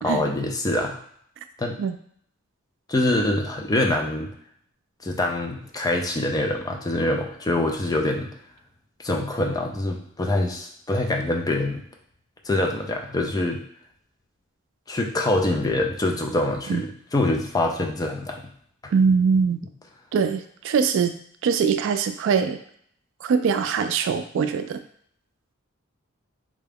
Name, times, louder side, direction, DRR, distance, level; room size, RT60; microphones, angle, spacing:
voice 1, 0.0-1.0 1.6-1.8 2.9-4.3 5.0-8.3 9.0-11.8 12.4-13.6 14.9-18.4, left 2 dB, 20° left, 3 dB, 0.4 m, -25 dB
voice 2, 18.9-19.6 20.1-21.1 21.4-22.6 23.2-24.8, right 6 dB, 60° right, 8 dB, 0.3 m, -22 dB
3.6 x 2.3 x 3.4 m, 0.64 s
head